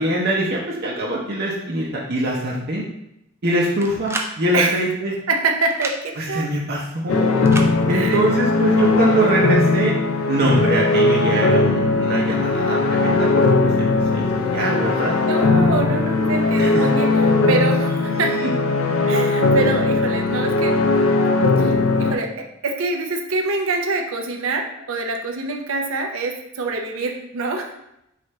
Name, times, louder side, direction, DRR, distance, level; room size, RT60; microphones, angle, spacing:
voice 1, 0.0-2.8 3.4-5.1 6.2-7.5 7.9-10.0 10.3-13.4 13.8-15.2 16.6-16.9 18.4-18.5, right 1 dB, 50° right, -4 dB, 0.7 m, -23 dB
sound 1, 3.8-4.3 5.7-6.0 7.4-7.7, right 2 dB, 10° right, 0.4 m, -29 dB
voice 2, 5.3-6.5 7.9-8.2 15.2-18.4 19.0-27.7, right 3 dB, 85° right, 3 dB, 0.6 m, -25 dB
sound 2, 7.1-22.2, left 3 dB, 90° left, 0.5 m, -19 dB
4.9 x 2.5 x 4.3 m, 0.82 s
head